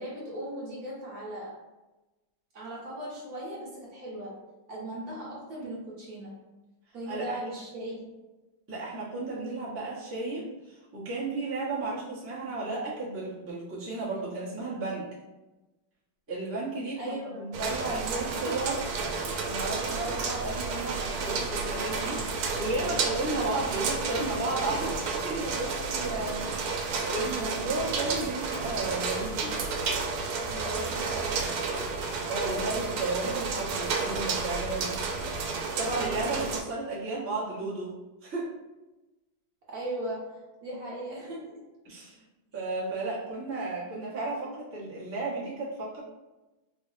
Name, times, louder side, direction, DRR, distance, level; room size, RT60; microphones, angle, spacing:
voice 1, 0.0-1.5 2.5-4.3 4.7-6.5 6.9-8.0 17.0-17.5 18.4-18.6 30.4-31.5 39.7-41.6, right 1 dB, 60° right, -5 dB, 1.1 m, -38 dB
voice 2, 7.1-7.4 8.7-15.1 16.3-18.8 19.4-29.6 32.2-35.0 35.8-38.5 41.8-42.2 42.5-46.0, right 2 dB, 20° right, -9 dB, 0.3 m, -33 dB
sound 1, 17.5-36.6, right 4 dB, 85° right, 1.4 m, -31 dB
4.4 x 2.1 x 3.2 m, 1.1 s
omnidirectional pair, 2.2 m